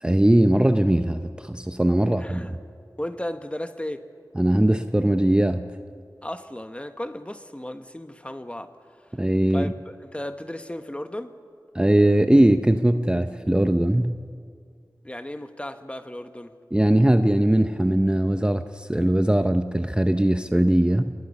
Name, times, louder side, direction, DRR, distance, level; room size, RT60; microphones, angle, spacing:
voice 1, 0.0-2.6 4.4-5.7 9.1-9.7 11.7-14.2 16.7-21.1, right 1 dB, 15° right, 8 dB, 0.7 m, -20 dB
voice 2, 1.9-2.6 3.0-4.1 6.2-8.7 9.5-11.3 15.0-16.5, left 1 dB, 15° left, 9 dB, 1.2 m, -35 dB
28.5 x 20.0 x 5.5 m, 2.2 s
wide cardioid pair, 55°, 7 cm